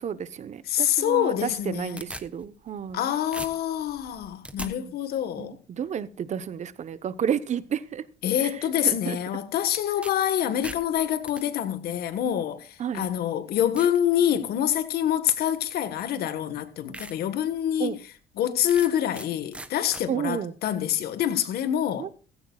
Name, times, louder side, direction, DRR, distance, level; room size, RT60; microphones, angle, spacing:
voice 1, 0.0-3.1 4.6-4.9 5.4-8.0 8.4-8.5 8.8-9.2 12.8-13.1 17.8-18.0 20.1-20.5 22.0-22.1, right 8 dB, 45° right, 0.9 m, -31 dB
voice 2, 0.7-2.0 2.9-5.6 8.2-17.9 18.4-22.1, left 10 dB, 70° left, 1.5 m, -26 dB
sound 1, 1.5-3.0 3.3-4.7 9.7-10.1 10.4-11.4 12.3-12.4 13.0-13.1 13.8-14.0 14.5-14.8 16.0-16.1 16.5-16.6 16.9-17.1 17.6-17.7 18.7-19.3 19.5-20.0, right 1 dB, 5° right, 1.1 m, -40 dB
16.0 x 14.5 x 2.4 m
cardioid pair, 110°, 17 cm